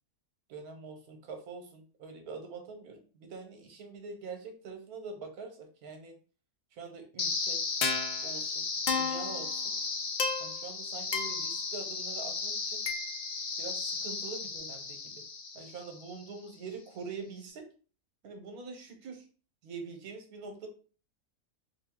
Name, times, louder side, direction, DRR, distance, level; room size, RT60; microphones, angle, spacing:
voice 1, 0.5-6.2 6.7-7.6 8.2-9.7 10.4-12.8 13.6-15.2 15.5-17.7 18.2-19.3 19.6-20.7, right 4 dB, 85° right, 4 dB, 1.4 m, -44 dB
sound 1, 7.2-16.2, left 4 dB, 85° left, 0.4 m, -34 dB
3.7 x 2.7 x 3.6 m, 0.38 s
omnidirectional pair, 1.5 m